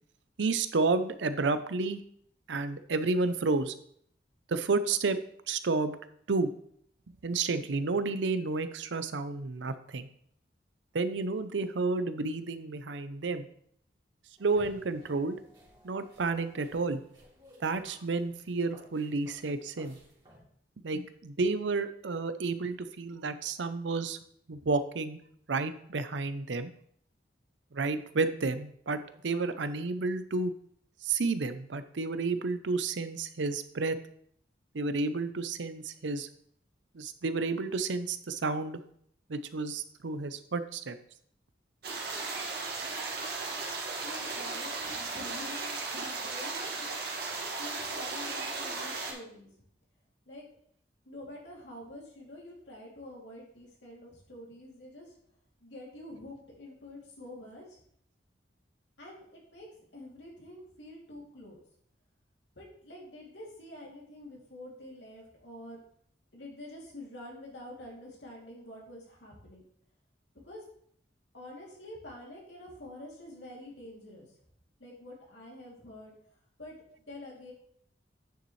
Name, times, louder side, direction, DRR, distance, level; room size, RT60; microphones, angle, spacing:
voice 1, 0.4-2.0 2.5-3.7 4.5-5.2 5.5-6.0 6.3-6.5 7.2-10.1 10.9-13.5 14.4-15.4 15.8-17.0 17.6-20.0 20.8-24.2 24.5-25.2 25.5-26.7 27.7-30.5 31.0-34.0 34.7-36.3 36.9-38.8 39.3-41.0, right 3 dB, 85° right, 11 dB, 0.6 m, -31 dB
sound 1, 14.4-20.4, equal, 25° right, 3.2 m, -57 dB
sound 2, 41.8-49.1, right 3 dB, 60° right, 1.9 m, -36 dB
voice 2, 44.0-46.9 47.6-49.5 50.3-50.5 51.0-55.1 55.6-57.8 59.0-59.7 59.9-61.6 62.6-65.8 66.3-69.6 70.4-70.6 71.3-74.3 74.8-76.1 76.6-76.8 77.1-77.5, left 1 dB, 80° left, -3 dB, 2.8 m, -47 dB
9.1 x 6.8 x 3.2 m, 0.66 s
head